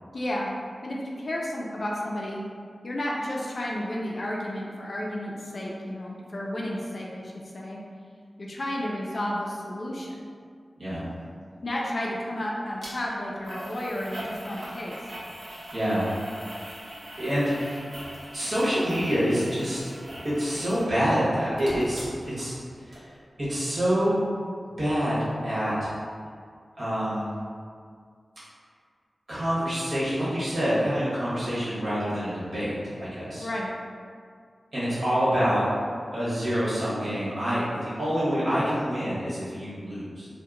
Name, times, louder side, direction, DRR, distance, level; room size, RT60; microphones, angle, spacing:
voice 1, 0.1-0.5 0.8-2.4 2.8-7.8 8.4-10.1 11.6-15.0 33.4-33.7, left 1 dB, 50° left, -3 dB, 0.4 m, -32 dB
sound 1, 12.8-12.9 13.4-20.9 21.2-22.6 22.9-23.0, equal, 75° right, 0.8 m, -41 dB
voice 2, 15.7-16.0 17.2-17.8 18.3-19.8 20.4-22.1 22.4-22.5 23.5-24.1 24.8-25.2 25.4-25.9 26.8-27.3 29.3-33.5 34.7-35.6 36.1-40.3, equal, 55° right, -11 dB, 1.3 m, -26 dB
2.8 x 2.1 x 3.6 m, 2.1 s
wide cardioid pair, 110°, 0 cm